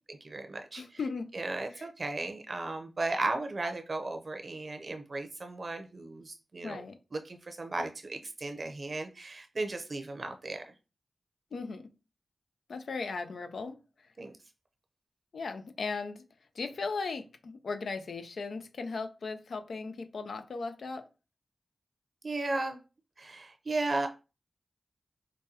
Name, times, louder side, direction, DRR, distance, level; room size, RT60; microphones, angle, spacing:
voice 1, 0.1-0.8 1.3-6.8 7.1-10.7 14.2-14.3 22.2-22.8 23.2-24.1, right 2 dB, 55° right, 0.7 m, -35 dB
voice 2, 0.7-1.3 1.7-1.9 6.6-7.0 11.5-11.9 12.7-14.1 15.3-16.2 16.5-21.1, left 4 dB, 85° left, 0.5 m, -37 dB
5.1 x 2.2 x 2.8 m
cardioid pair, 55°, 0 cm